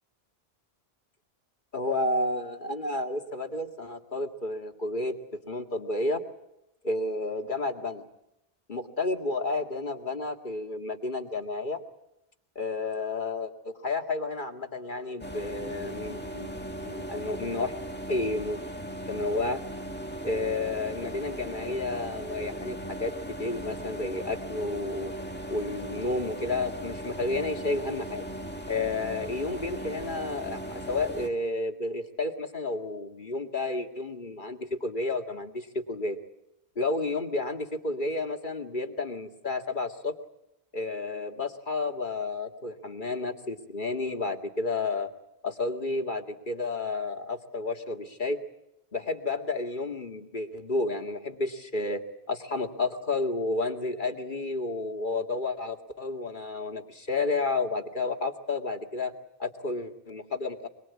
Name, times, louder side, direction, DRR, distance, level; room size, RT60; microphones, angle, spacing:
voice 1, 1.7-5.2 5.5-6.2 6.8-8.0 8.7-11.8 12.6-17.7 18.1-18.6 19.1-19.6 20.2-25.1 25.5-28.2 28.7-36.2 36.8-40.1 40.7-45.1 45.4-48.4 48.9-52.0 52.3-59.1 59.4-60.7, left 2 dB, 50° left, 4 dB, 2.3 m, -31 dB
sound 1, 15.2-31.3, right 1 dB, 10° left, 1.9 m, -38 dB
24.5 x 23.0 x 8.5 m, 0.84 s
omnidirectional pair, 1.1 m